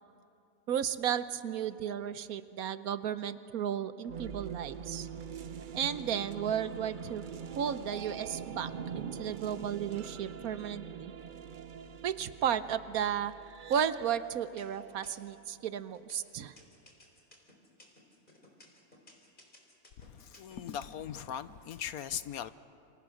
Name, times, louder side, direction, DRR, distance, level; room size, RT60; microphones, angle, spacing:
voice 1, 0.7-5.1 5.7-7.2 7.5-11.1 12.0-13.3 13.7-16.5, right 9 dB, 70° right, 13 dB, 1.2 m, -34 dB
sound 1, 4.0-15.9, right 7 dB, 50° right, 0.6 m, -44 dB
sound 2, 13.5-13.9 14.4-15.4 15.9-21.0, left 1 dB, 30° left, 4.0 m, -58 dB
voice 2, 20.3-22.5, left 9 dB, 70° left, 13 dB, 1.2 m, -39 dB
27.0 x 27.0 x 6.4 m, 2.7 s
omnidirectional pair, 1.6 m